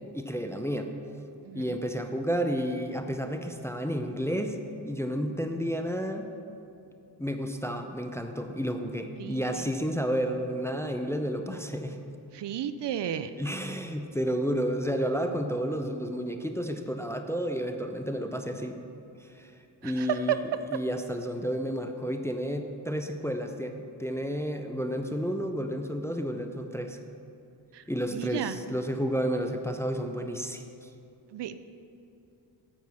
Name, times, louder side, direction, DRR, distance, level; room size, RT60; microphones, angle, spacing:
voice 1, 0.1-0.9 1.5-4.6 4.8-6.3 7.2-12.0 13.4-18.8 19.2-19.5 19.8-20.4 20.7-27.0 27.9-30.9, equal, 5° left, 6 dB, 0.5 m, -31 dB
voice 2, 1.5-1.8 9.2-9.6 12.3-13.3 19.8-20.4 27.7-27.8 28.1-28.6 31.3-31.6, right 10 dB, 65° right, 12 dB, 0.5 m, -32 dB
9.1 x 4.8 x 6.8 m, 2.7 s
cardioid pair, 85°, 46 cm